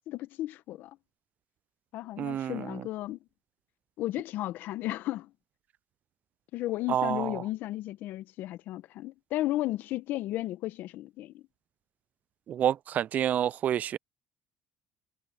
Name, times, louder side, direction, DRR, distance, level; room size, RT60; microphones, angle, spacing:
voice 1, 0.1-1.0 1.9-3.2 4.0-5.3 6.5-11.4, left 16 dB, 65° left, 1.3 m, -34 dB
voice 2, 2.2-2.9 6.9-7.4 12.5-14.0, right 10 dB, 50° right, 0.3 m, -29 dB
supercardioid pair, 75°, 3 cm